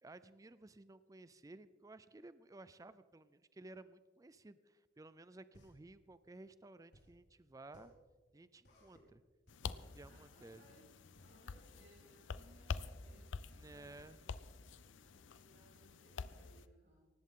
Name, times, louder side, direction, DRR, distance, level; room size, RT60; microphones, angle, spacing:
voice 1, 0.0-7.9 8.3-9.2 9.6-10.6 13.6-14.2, right 2 dB, 20° right, 15 dB, 0.4 m, -56 dB
sound 1, 5.5-15.4, equal, 60° left, 4.8 m, -66 dB
sound 2, 9.5-16.7, left 5 dB, 75° left, 0.6 m, -48 dB
voice 2, 10.1-10.9 11.2-17.1, right 1 dB, 60° right, -6 dB, 4.2 m, -67 dB
18.5 x 15.5 x 3.7 m, 1.4 s
head